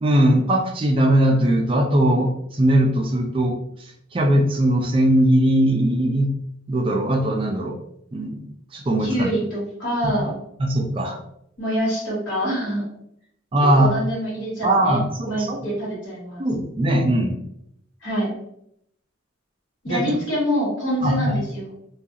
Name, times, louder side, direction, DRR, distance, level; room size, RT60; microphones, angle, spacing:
voice 1, 0.0-3.6 4.1-6.3 6.7-7.7 8.1-8.4 8.7-9.3 10.0-10.1 10.6-11.2 13.5-14.0 14.6-15.7 16.4-17.4 19.9-20.0 21.0-21.4, right 1 dB, 25° right, 2 dB, 0.3 m, -20 dB
voice 2, 9.0-10.4 11.6-12.9 13.7-15.0 15.2-16.4 18.0-18.3 19.8-21.7, equal, 70° left, -6 dB, 1.4 m, -25 dB
2.4 x 2.3 x 2.7 m, 0.74 s
head